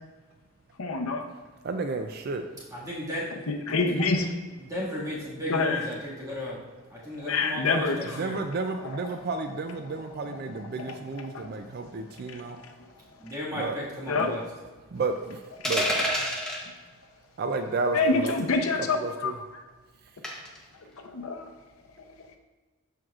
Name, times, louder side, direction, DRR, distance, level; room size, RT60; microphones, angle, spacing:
voice 1, 0.8-1.3 3.5-4.3 5.5-5.8 7.3-8.2 8.8-8.9 10.3-10.4 10.8-11.0 11.2-11.7 12.2-12.4 12.8-12.9 14.1-14.3 17.9-19.3 20.9-21.5, left 3 dB, 75° left, 4 dB, 0.7 m, -27 dB
voice 2, 1.6-2.4 8.1-12.6 13.5-13.8 14.9-15.4 15.6-15.8 17.4-18.3 18.8-19.3, right 3 dB, 45° right, 6 dB, 0.4 m, -31 dB
voice 3, 2.7-3.3 4.6-6.6 6.9-8.4 13.2-14.4, left 1 dB, 15° right, -7 dB, 1.9 m, -34 dB
sound 1, 15.6-16.6 18.3-18.5 20.2-20.6, equal, 5° left, 0.8 m, -27 dB
12.5 x 4.5 x 2.4 m, 1.3 s
head